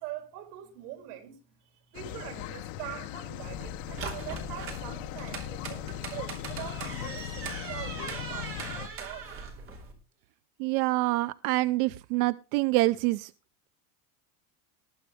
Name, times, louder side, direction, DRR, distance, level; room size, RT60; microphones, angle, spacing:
voice 1, 0.0-9.3, right 12 dB, 90° right, 3.5 m, -43 dB
sound 1, 1.9-8.9, left 13 dB, 60° left, 1.1 m, -39 dB
sound 2, 3.4-9.9, right 5 dB, 30° right, 2.9 m, -40 dB
voice 2, 10.6-13.3, right 20 dB, 65° right, 0.6 m, -26 dB
19.5 x 8.0 x 3.4 m
cardioid pair, 180°, 46 cm